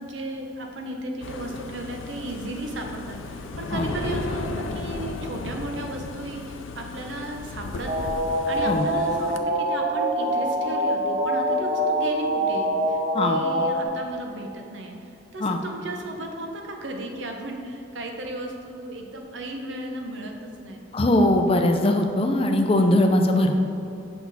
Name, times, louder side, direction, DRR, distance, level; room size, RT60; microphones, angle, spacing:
voice 1, 0.0-8.1 8.5-20.8, right 1 dB, 70° right, 3 dB, 0.8 m, -35 dB
sound 1, 1.2-9.4, left 3 dB, 85° left, 0.5 m, -35 dB
sound 2, 7.9-13.8, equal, 35° right, 0.5 m, -24 dB
voice 2, 20.9-23.6, left 1 dB, 30° left, 4 dB, 0.5 m, -20 dB
6.3 x 5.7 x 4.1 m, 2.7 s
head